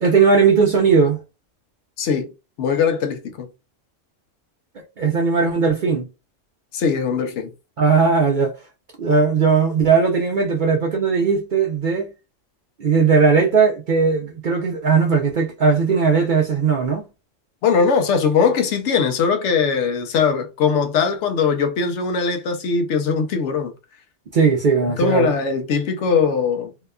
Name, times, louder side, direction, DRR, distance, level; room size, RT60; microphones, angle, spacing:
voice 1, 0.0-1.2 5.0-6.1 7.8-8.5 9.0-12.1 12.8-17.0 24.3-25.3, right 5 dB, 60° right, 0.5 m, -18 dB
voice 2, 2.0-2.3 2.6-3.5 6.7-7.5 17.6-23.7 25.0-26.7, left 5 dB, 70° left, 0.9 m, -20 dB
2.7 x 2.2 x 2.2 m
omnidirectional pair, 1.3 m